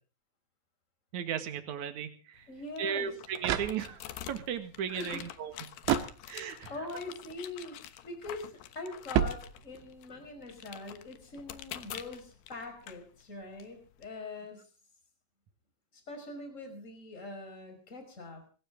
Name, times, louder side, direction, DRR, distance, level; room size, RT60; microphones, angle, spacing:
voice 1, 1.1-2.4 2.8-5.8 6.3-6.7, right 8 dB, 55° right, 8 dB, 2.5 m, -36 dB
sound 1, 2.3-14.1, left 12 dB, 70° left, 2.6 m, -47 dB
voice 2, 2.5-3.1 4.9-5.2 6.7-7.8 8.0-8.5 8.7-14.6 15.9-18.4, left 2 dB, 15° left, 6 dB, 5.1 m, -43 dB
sound 2, 3.0-4.3 5.8-6.7 9.1-10.0, right 10 dB, 80° right, 3.6 m, -32 dB
25.5 x 15.0 x 3.7 m, 0.38 s
omnidirectional pair, 5.4 m